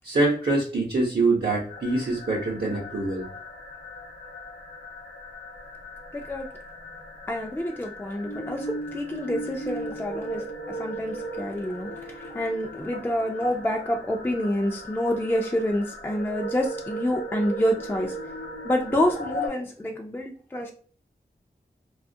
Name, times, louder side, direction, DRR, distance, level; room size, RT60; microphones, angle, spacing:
voice 1, 0.0-3.2, right 2 dB, 65° right, -3 dB, 0.7 m, -24 dB
sound 1, 1.7-19.5, right 1 dB, 90° left, 0.6 m, -37 dB
voice 2, 6.1-6.5 7.3-10.4 10.8-18.1 18.6-20.7, left 1 dB, 10° left, 2 dB, 0.3 m, -27 dB
2.3 x 2.1 x 2.6 m, 0.44 s
wide cardioid pair, 55°, 18 cm